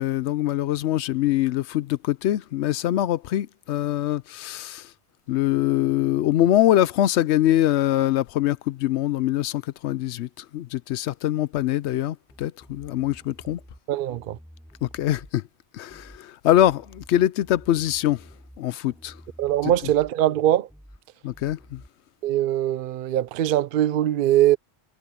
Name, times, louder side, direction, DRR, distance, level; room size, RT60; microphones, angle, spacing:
voice 1, 0.0-4.9 5.3-13.6 14.8-15.4 15.7-18.2 18.6-19.2 21.2-21.8, left 13 dB, 80° left, 0.8 m, -23 dB
sound 1, 12.3-13.8 14.1-15.3 15.9-16.2 16.5-18.6 18.9-20.1 20.7-21.0 21.3-21.9, equal, ahead, 6.6 m, -50 dB
voice 2, 13.9-14.4 19.4-20.7 22.2-24.6, right 12 dB, 60° right, 0.6 m, -22 dB
omnidirectional pair, 1.1 m